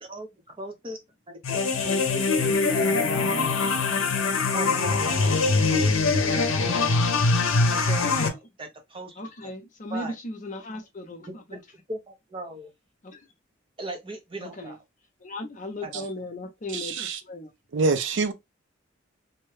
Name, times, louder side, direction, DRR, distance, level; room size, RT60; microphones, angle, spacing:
voice 1, 0.0-3.8 4.5-5.9 6.2-7.0 7.7-9.5 9.9-10.1 11.3-11.6 11.9-12.7 13.8-14.8 15.8-16.0, right 1 dB, 25° right, 0.7 m, -39 dB
sound 1, 1.4-8.3, left 4 dB, 90° left, 0.6 m, -23 dB
voice 2, 8.0-8.4 9.2-11.6 13.0-13.3 14.4-14.8 15.2-17.5, left 1 dB, 40° left, 0.6 m, -36 dB
voice 3, 16.7-17.2 17.7-18.3, right 4 dB, 65° right, 0.4 m, -25 dB
2.7 x 2.2 x 3.1 m
head